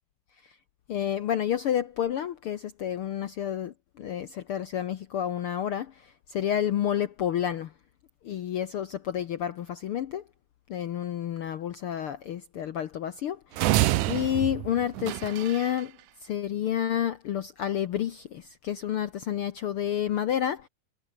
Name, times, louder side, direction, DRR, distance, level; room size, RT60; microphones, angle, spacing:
voice 1, 0.9-5.9 6.3-7.7 8.2-10.2 10.7-13.4 14.1-15.9 16.2-20.6, left 10 dB, 75° left, 1.2 m, -29 dB
sound 1, 13.6-15.8, right 17 dB, 75° right, 2.1 m, -27 dB
omnidirectional pair, 3.7 m